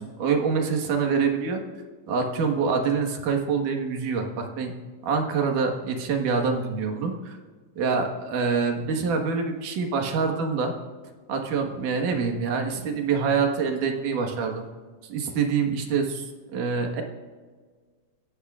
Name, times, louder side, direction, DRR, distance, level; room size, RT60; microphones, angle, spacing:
voice 1, 0.0-1.6 2.1-4.7 5.0-7.4 7.8-10.7 11.3-14.7 15.1-17.0, right 5 dB, 70° right, 3 dB, 3.0 m, -26 dB
28.0 x 15.5 x 2.5 m, 1.5 s
omnidirectional pair, 3.9 m